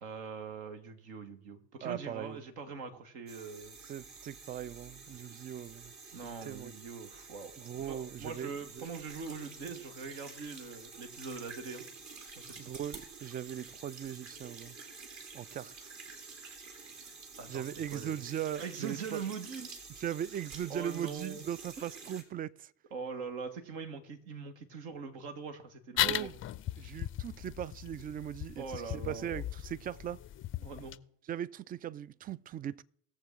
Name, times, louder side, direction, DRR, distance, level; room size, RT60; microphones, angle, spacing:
voice 1, 0.0-3.8 6.1-7.5 7.8-11.8 12.4-12.7 17.4-17.6 17.9-18.2 18.6-19.7 20.7-21.4 21.8-21.9 22.9-26.3 28.6-29.4 30.6-31.0, right 5 dB, 70° right, 1.4 m, -42 dB
voice 2, 1.8-2.4 3.8-6.7 7.6-8.9 12.6-14.8 15.3-15.9 17.0-17.1 17.5-19.2 20.0-22.7 26.0-26.3 26.8-30.2 31.2-32.8, right 10 dB, 25° right, 0.4 m, -39 dB
sound 1, 3.3-22.2, right 4 dB, 50° right, 2.5 m, -49 dB
sound 2, 26.0-31.0, left 13 dB, 35° left, 0.5 m, -37 dB
19.5 x 7.3 x 3.6 m
figure-of-eight pair, 50°, 35 cm